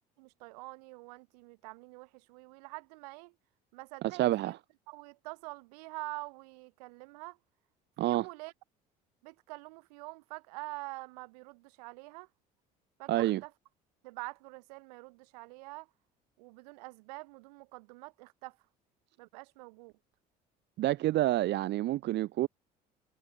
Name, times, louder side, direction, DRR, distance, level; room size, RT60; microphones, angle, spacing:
voice 1, 0.2-3.3 3.7-4.6 4.9-7.4 8.0-8.5 9.2-12.3 13.0-13.5 14.0-15.9 16.4-18.6 19.2-19.9, right 26 dB, 85° right, 6.1 m, -46 dB
voice 2, 4.0-4.6 8.0-8.3 13.1-13.4 20.8-22.5, right 15 dB, 60° right, 1.3 m, -28 dB
supercardioid pair, 75°, 20 cm